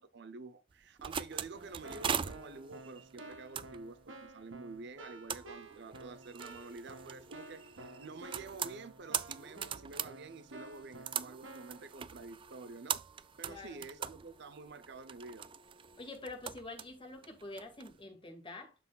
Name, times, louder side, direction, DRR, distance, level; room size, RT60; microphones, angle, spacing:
voice 1, 0.0-13.0 13.4-15.5, right 3 dB, 60° right, 0.7 m, -49 dB
sound 1, 0.7-17.9, right 8 dB, 25° right, 0.3 m, -42 dB
Keyboard (musical), 1.5-11.8, right 2 dB, 80° right, 1.7 m, -52 dB
voice 2, 13.5-13.8 16.0-18.8, left 2 dB, 25° left, 2.0 m, -46 dB
12.5 x 4.2 x 2.4 m
head